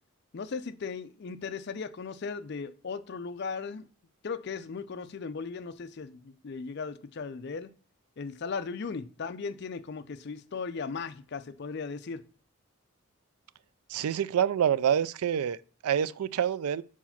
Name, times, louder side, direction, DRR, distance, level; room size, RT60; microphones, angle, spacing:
voice 1, 0.3-3.9 4.2-7.7 8.2-12.2, left 5 dB, 50° left, 0.4 m, -37 dB
voice 2, 13.9-16.8, right 9 dB, 90° right, 0.3 m, -27 dB
4.7 x 4.2 x 5.7 m
head